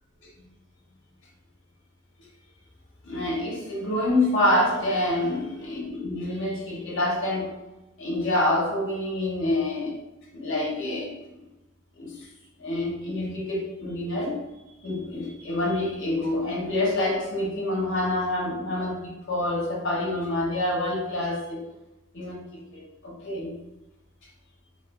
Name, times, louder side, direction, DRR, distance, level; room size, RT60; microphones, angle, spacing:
voice 1, 3.0-7.5 8.0-10.0 10.3-11.5 12.0-12.3 12.6-14.4 14.8-21.7 22.1-23.6, left 1 dB, 60° left, -2 dB, 0.8 m, -27 dB
3.1 x 2.3 x 2.3 m, 0.99 s
head